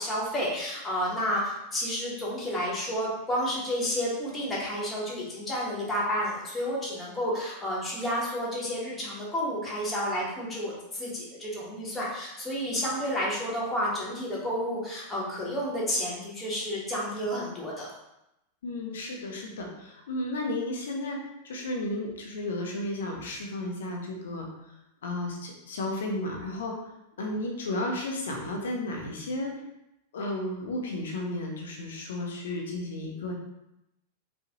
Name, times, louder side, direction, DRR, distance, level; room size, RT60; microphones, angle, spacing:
voice 1, 0.0-17.9, equal, 15° left, -6 dB, 1.4 m, -31 dB
voice 2, 18.6-21.2 21.4-24.5 25.0-26.7 27.2-29.5 30.1-33.3, left 1 dB, 60° left, 1 dB, 0.8 m, -33 dB
5.1 x 2.5 x 3.0 m, 0.87 s
figure-of-eight pair, 90°, 0 cm